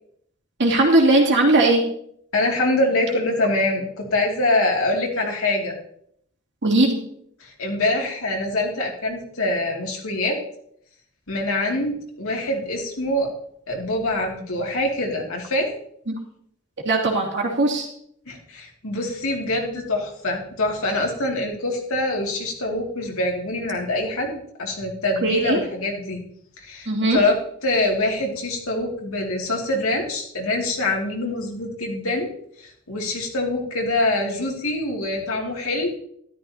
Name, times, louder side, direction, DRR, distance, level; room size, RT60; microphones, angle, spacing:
voice 1, 0.6-1.8 6.6-7.0 16.1-16.2 16.8-17.9 25.2-25.6 26.9-27.2, right 2 dB, 55° right, -2 dB, 2.8 m, -18 dB
voice 2, 2.3-5.8 7.4-10.4 11.3-13.3 13.7-15.7 18.3-26.2 26.6-32.3 32.6-35.9, left 2 dB, 70° left, 0 dB, 2.6 m, -24 dB
13.0 x 12.5 x 2.9 m, 0.70 s
head